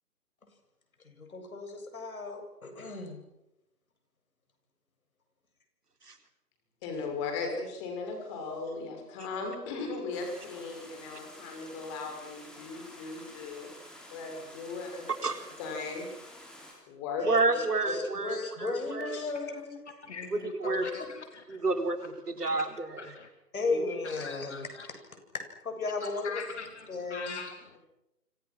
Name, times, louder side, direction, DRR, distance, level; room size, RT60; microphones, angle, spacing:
voice 1, 1.0-3.2 17.5-19.8 23.5-24.7 25.3-27.4, left 3 dB, 60° left, 5 dB, 7.8 m, -35 dB
voice 2, 6.8-13.7 14.1-15.1 15.6-16.1 16.9-17.6 23.7-23.8, left 4 dB, 20° left, 3 dB, 6.3 m, -37 dB
sound 1, 10.1-16.7, left 1 dB, ahead, 3.3 m, -50 dB
voice 3, 17.3-19.2 20.3-20.9 21.5-23.0, right 3 dB, 75° right, 6 dB, 4.3 m, -30 dB
voice 4, 20.0-21.6 22.4-22.6 23.0-23.3 24.0-24.9 26.0-27.8, left 5 dB, 45° left, 6 dB, 2.8 m, -41 dB
29.0 x 26.0 x 6.2 m, 0.89 s
figure-of-eight pair, 155°, 47 cm